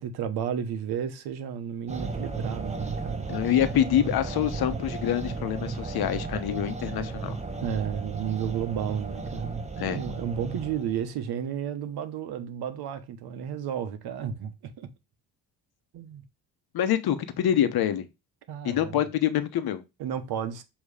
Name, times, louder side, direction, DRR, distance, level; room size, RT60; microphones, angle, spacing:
voice 1, 0.0-3.3 7.6-14.9 15.9-16.2 18.5-19.0 20.0-20.6, right 8 dB, 85° right, 1.1 m, -32 dB
sound 1, 1.9-11.1, right 4 dB, 20° right, 1.3 m, -34 dB
voice 2, 3.3-7.4 9.8-10.0 16.7-18.1 18.6-19.8, left 11 dB, 75° left, 1.0 m, -26 dB
7.3 x 3.1 x 4.9 m
cardioid pair, 90°, 38 cm